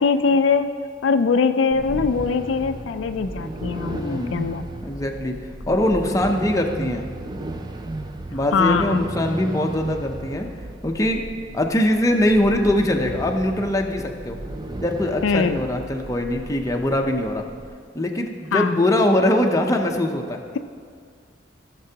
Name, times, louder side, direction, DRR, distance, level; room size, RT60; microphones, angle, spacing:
voice 1, 0.0-0.7 1.0-4.6 8.5-9.0 15.2-15.6 18.5-18.8, left 5 dB, 80° left, 9 dB, 0.4 m, -21 dB
sound 1, 1.7-17.7, right 1 dB, 20° right, 0.5 m, -34 dB
voice 2, 4.0-5.4 5.7-7.1 8.3-10.5 10.8-11.2 11.5-14.4 14.8-17.4 17.9-20.4, left 1 dB, 15° left, 2 dB, 0.7 m, -22 dB
15.5 x 6.8 x 2.8 m, 2.1 s
head